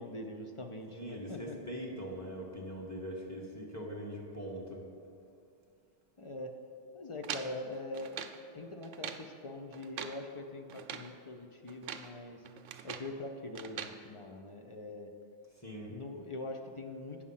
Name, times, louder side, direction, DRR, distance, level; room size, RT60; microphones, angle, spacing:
voice 1, 0.0-1.6 6.2-6.5 6.9-8.3 8.5-12.5 12.8-15.1 15.9-17.3, left 2 dB, 50° left, 4 dB, 0.4 m, -43 dB
voice 2, 0.9-4.8 15.6-15.9, equal, 15° left, -2 dB, 1.2 m, -42 dB
sound 1, 7.2-8.4 8.8-9.3 9.7-10.2 10.7-11.1 11.7-12.1 12.4-13.1 13.6-14.0, right 8 dB, 85° right, 0.9 m, -42 dB
8.4 x 6.2 x 5.6 m, 2.4 s
omnidirectional pair, 1.2 m